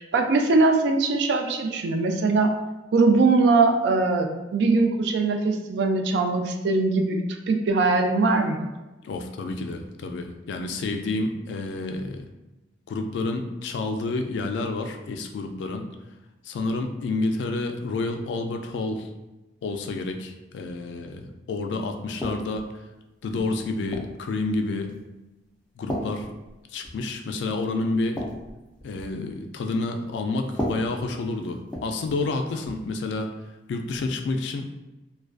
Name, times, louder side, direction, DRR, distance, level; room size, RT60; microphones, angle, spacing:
voice 1, 0.0-2.5 2.9-8.7, right 3 dB, 75° right, 4 dB, 0.3 m, -21 dB
voice 2, 9.0-12.3 12.9-15.9 16.4-19.1 19.6-22.7 23.2-24.9 25.8-26.3 26.7-28.2 28.8-33.3 33.7-34.7, left 3 dB, 85° left, 5 dB, 0.3 m, -29 dB
sound 1, 22.2-22.7 23.4-24.2 24.9-25.2 25.9-27.1 27.4-27.5 27.9-29.2 30.5-32.3 32.6-32.9 33.9-34.1, equal, 5° left, 0.4 m, -35 dB
2.4 x 2.2 x 2.3 m, 1.0 s
head